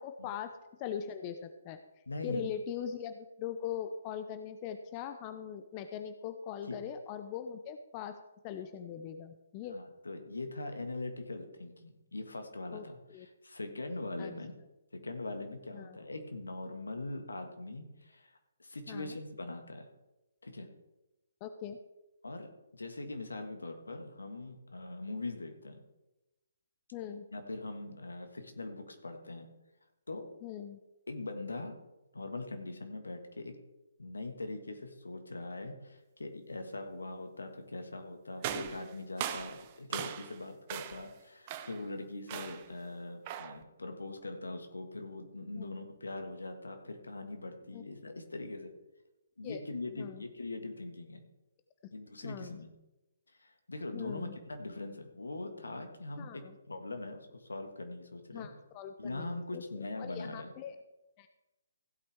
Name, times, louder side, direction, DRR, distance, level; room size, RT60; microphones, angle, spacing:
voice 1, 0.0-1.8 2.2-8.2 8.4-9.8 12.7-13.3 14.2-14.3 15.7-16.0 18.9-19.1 21.4-21.8 26.9-27.3 30.4-30.8 45.5-45.7 47.7-47.8 49.4-49.6 49.9-50.2 52.2-52.6 53.9-54.4 56.2-56.6 58.3-60.8 61.2-61.3, left 8 dB, 30° left, 8 dB, 0.6 m, -41 dB
voice 2, 2.1-2.4 6.7-6.8 9.7-14.5 14.9-19.9 20.4-20.7 22.2-25.8 27.3-29.5 30.1-30.4 31.1-31.8 32.1-33.6 34.0-48.7 49.4-51.2 51.9-52.7 53.4-58.5 59.0-60.5, left 2 dB, 75° left, 5 dB, 1.8 m, -42 dB
sound 1, 38.4-40.4 40.7-41.1 41.5-41.9 42.3-42.7 43.3-43.6, right 10 dB, 30° right, 0.8 m, -39 dB
15.5 x 8.6 x 3.6 m, 1.0 s
figure-of-eight pair, 135°, 0 cm